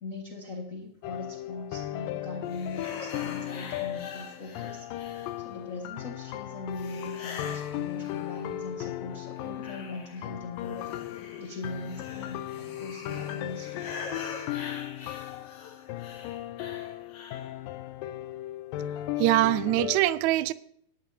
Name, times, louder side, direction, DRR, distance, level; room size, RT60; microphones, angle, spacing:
voice 1, 0.0-10.8 11.1-12.5 12.8-13.9, left 3 dB, 40° left, 1.2 m, -40 dB
sound 1, 1.0-20.0, left 13 dB, 85° left, 2.3 m, -37 dB
sound 2, 2.5-5.7 6.8-8.8 9.1-17.6, left 5 dB, 55° left, 2.1 m, -44 dB
voice 2, 19.2-20.5, right 16 dB, 85° right, 1.6 m, -23 dB
18.5 x 11.5 x 2.8 m
omnidirectional pair, 3.8 m